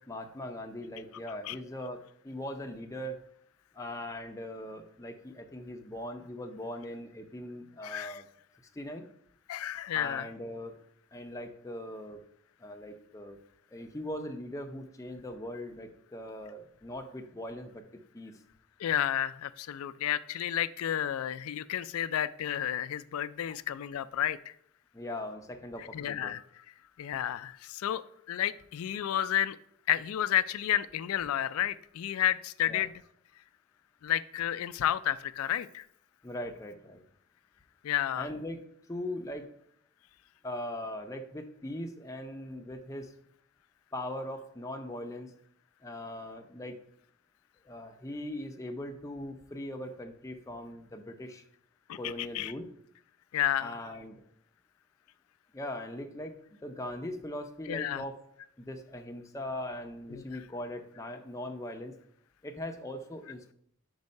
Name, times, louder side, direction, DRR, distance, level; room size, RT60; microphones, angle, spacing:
voice 1, 0.1-3.2 3.7-8.3 8.7-9.0 9.9-10.7 11.1-12.2 12.6-13.4 13.7-17.8 18.1-18.3 24.9-26.3 32.7-32.8 36.2-37.0 38.2-38.6 38.9-39.5 40.4-43.1 43.9-45.3 45.8-46.8 47.6-51.4 52.0-52.7 53.6-54.2 55.5-58.2 58.6-61.9 62.4-63.5, left 1 dB, 15° left, 4 dB, 0.5 m, -40 dB
voice 2, 7.8-8.2 9.5-10.3 18.8-24.5 25.8-26.6 27.0-29.6 29.9-32.9 34.0-35.9 37.8-38.3 51.9-52.5 53.3-53.8 57.7-58.0 60.1-60.4, left 11 dB, 75° left, 16 dB, 0.3 m, -31 dB
5.3 x 4.7 x 5.3 m, 0.70 s
head